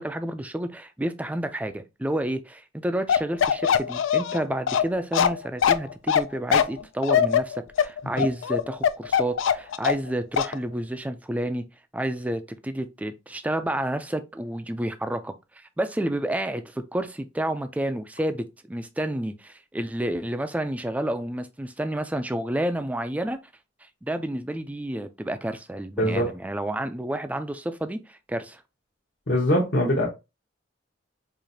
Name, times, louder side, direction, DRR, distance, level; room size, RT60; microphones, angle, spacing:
voice 1, 0.0-11.7 11.9-23.4 23.8-28.6, right 1 dB, 10° right, 0.3 m, -30 dB
Bark, 3.1-10.1 10.4-10.5, left 8 dB, 85° left, 0.3 m, -21 dB
voice 2, 26.0-26.3 29.3-30.0, equal, 60° left, 1.0 m, -22 dB
4.7 x 2.5 x 2.7 m
head